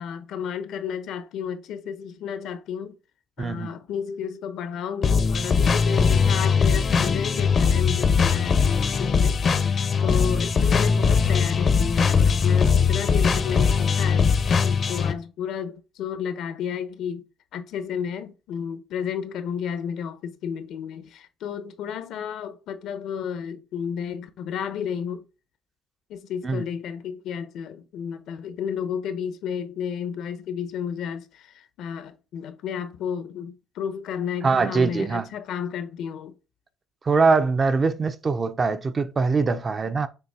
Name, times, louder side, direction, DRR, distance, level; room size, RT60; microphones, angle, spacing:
voice 1, 0.0-3.0 3.4-14.2 14.6-17.2 17.5-25.2 26.1-36.3, left 7 dB, 65° left, 0.9 m, -32 dB
voice 2, 3.4-3.8 26.4-26.6 34.4-35.3 37.0-40.1, right 4 dB, 25° right, 0.5 m, -22 dB
sound 1, 5.0-15.1, left 5 dB, 35° left, 0.7 m, -20 dB
6.7 x 3.2 x 4.8 m
cardioid pair, 155°, 0 cm